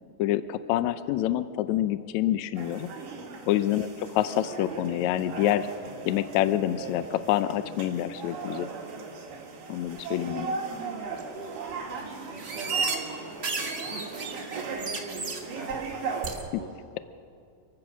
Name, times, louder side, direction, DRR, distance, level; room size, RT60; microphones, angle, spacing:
voice 1, 0.2-2.9 3.5-5.7 6.1-8.7 9.7-10.5 16.5-16.6, left 13 dB, 80° left, 13 dB, 1.7 m, -27 dB
sound 1, 2.6-16.3, right 4 dB, 80° right, 3.9 m, -38 dB
voice 2, 10.2-10.6 11.0-17.0, right 2 dB, 35° right, -6 dB, 3.1 m, -46 dB
sound 2, 11.2-11.3 11.7-12.0 12.3-13.0 13.3-15.4 15.7-15.9 16.2-16.4, right 4 dB, 50° right, 0.8 m, -32 dB
27.5 x 15.5 x 6.2 m, 2.3 s
omnidirectional pair, 3.8 m